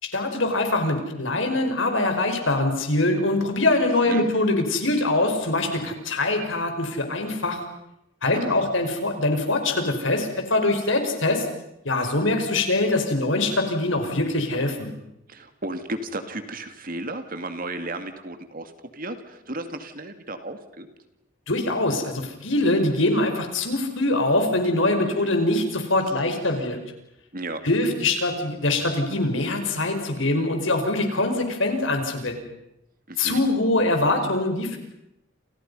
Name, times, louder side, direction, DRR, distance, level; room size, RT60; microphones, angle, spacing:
voice 1, 0.0-7.6 8.2-11.5 11.8-14.9 21.5-26.8 27.6-32.4 33.2-34.8, left 2 dB, 75° left, 5 dB, 5.1 m, -23 dB
voice 2, 15.3-20.9 25.1-25.3 27.3-27.7 33.1-33.4, right 2 dB, 45° right, 8 dB, 2.3 m, -34 dB
29.5 x 28.5 x 5.5 m, 0.83 s
head